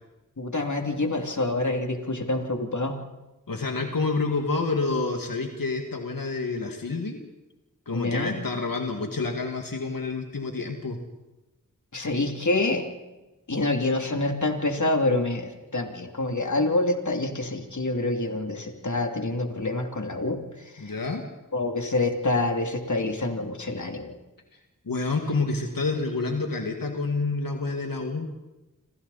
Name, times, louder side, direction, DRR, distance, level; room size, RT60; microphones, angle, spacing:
voice 1, 0.4-3.0 7.9-8.5 11.9-12.9 13.5-20.4 20.7-20.9 21.5-24.2, left 2 dB, 60° left, 3 dB, 2.9 m, -27 dB
voice 2, 3.5-7.2 7.9-11.0 20.8-21.3 24.5-24.6 24.9-28.3, left 3 dB, 85° left, 3 dB, 2.1 m, -28 dB
29.5 x 26.0 x 4.2 m, 1.1 s
wide cardioid pair, 45°, 33 cm